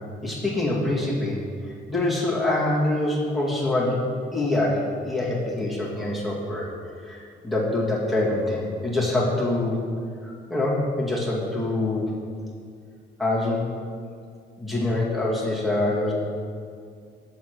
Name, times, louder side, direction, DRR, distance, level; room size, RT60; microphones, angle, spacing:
voice 1, 0.0-1.4 1.9-4.0 4.3-6.7 7.0-9.8 10.2-12.1 13.2-13.6 14.6-16.1, left 2 dB, ahead, -7 dB, 2.0 m, -25 dB
7.1 x 4.2 x 6.5 m, 2.2 s
cardioid pair, 90°, 20 cm